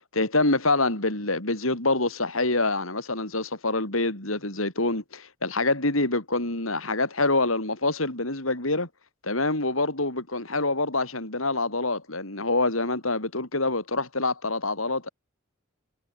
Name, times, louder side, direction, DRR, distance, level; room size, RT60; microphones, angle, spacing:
voice 1, 0.1-8.9 9.2-15.1, left 2 dB, 85° left, 6.5 m, -26 dB
head